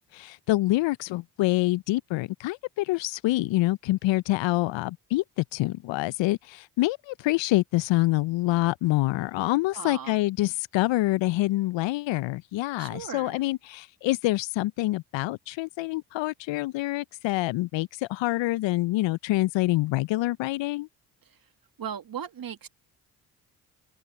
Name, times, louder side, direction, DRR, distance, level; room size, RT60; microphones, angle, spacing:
voice 1, 0.1-20.9, left 18 dB, 65° left, 0.9 m, -26 dB
voice 2, 9.7-10.2 12.8-13.4 21.3-21.4 21.8-22.7, right 8 dB, 45° right, 2.1 m, -37 dB
hypercardioid pair, 45°, 49 cm